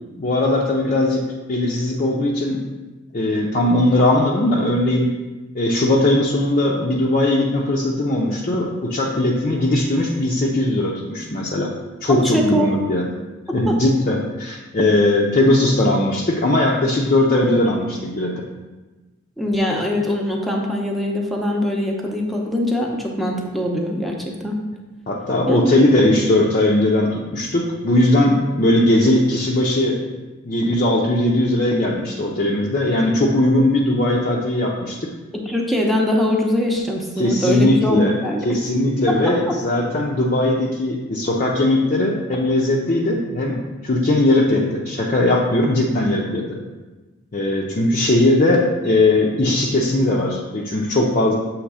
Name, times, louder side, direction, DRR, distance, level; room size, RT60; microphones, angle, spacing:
voice 1, 0.2-2.6 3.1-5.1 5.5-11.7 12.0-13.1 13.5-18.4 25.1-30.0 30.5-35.1 37.2-38.1 38.4-46.6 47.3-51.3, left 1 dB, 40° left, -3 dB, 0.6 m, -19 dB
voice 2, 12.2-12.7 13.7-13.8 19.4-24.6 25.5-25.8 35.3-38.6 39.1-39.5, left 1 dB, ahead, -1 dB, 0.7 m, -22 dB
7.2 x 3.1 x 4.8 m, 1.2 s
head